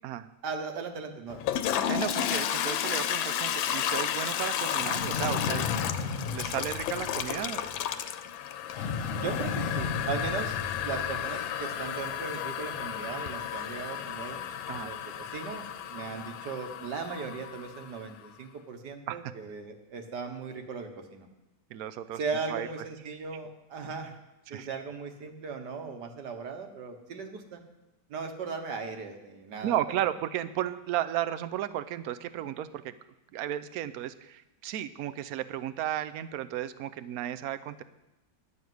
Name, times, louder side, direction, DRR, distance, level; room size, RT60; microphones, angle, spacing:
voice 1, 0.4-1.6 9.1-14.4 14.7-21.3 22.1-24.2 24.5-27.6 28.1-30.1 32.3-32.4, right 5 dB, 60° right, 5 dB, 1.8 m, -38 dB
Toilet flush, 1.3-18.1, left 9 dB, 85° left, 1.4 m, -33 dB
voice 2, 1.9-5.7 6.3-7.7 14.7-14.9 19.1-19.2 21.7-22.2 22.5-22.7 24.5-24.7 29.6-32.9 33.3-37.8, right 12 dB, 80° right, 12 dB, 0.8 m, -34 dB
sound 1, 4.7-7.8 8.7-11.4, left 5 dB, 45° left, 1.3 m, -35 dB
11.0 x 6.6 x 9.3 m, 0.96 s
omnidirectional pair, 2.1 m